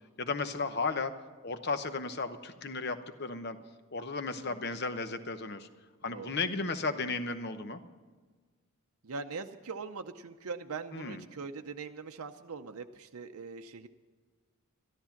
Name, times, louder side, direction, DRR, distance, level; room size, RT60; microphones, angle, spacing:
voice 1, 0.2-1.1 1.4-3.6 3.9-5.7 6.0-7.8 10.9-11.2, left 3 dB, 45° left, 10 dB, 0.9 m, -34 dB
voice 2, 4.3-4.6 6.1-6.4 9.0-13.9, right 4 dB, 80° right, 6 dB, 0.6 m, -42 dB
13.5 x 12.5 x 5.8 m, 1.4 s
head